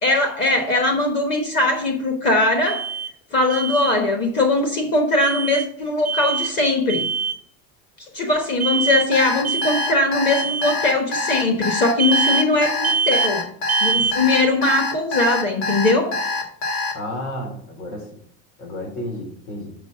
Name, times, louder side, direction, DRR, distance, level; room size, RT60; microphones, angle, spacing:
voice 1, 0.0-2.9 3.3-7.1 8.0-13.4 13.8-16.2, left 2 dB, 30° left, 3 dB, 1.1 m, -20 dB
Alarm, 2.6-3.1 3.5-3.9 5.2-5.7 6.0-6.5 6.9-7.4 8.6-9.1 9.4-9.9 10.3-10.7 12.0-12.5 12.8-13.3 13.7-14.2, right 5 dB, 5° right, 0.4 m, -23 dB
Alarm 2, 9.1-16.9, left 3 dB, 55° left, 1.6 m, -25 dB
voice 2, 16.9-18.1 18.6-19.7, left 1 dB, 80° left, 0 dB, 4.1 m, -31 dB
6.1 x 5.6 x 6.6 m, 0.62 s
cardioid pair, 180°, 35 cm